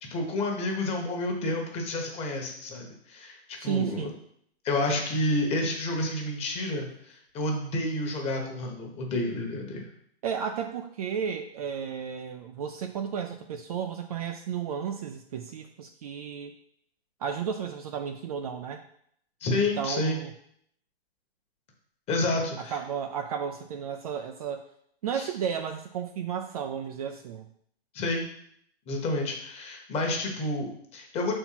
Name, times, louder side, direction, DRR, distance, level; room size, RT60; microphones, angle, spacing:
voice 1, 0.1-4.1 4.6-9.9 19.4-20.2 22.1-22.8 25.1-25.3 27.9-28.3 28.9-31.3, left 2 dB, 20° left, 1 dB, 1.2 m, -30 dB
voice 2, 3.6-4.1 10.2-16.5 17.2-18.8 19.5-20.3 22.6-24.6 25.0-27.5, right 7 dB, 35° right, 6 dB, 0.5 m, -33 dB
5.7 x 4.5 x 5.8 m, 0.69 s
hypercardioid pair, 145°, 31 cm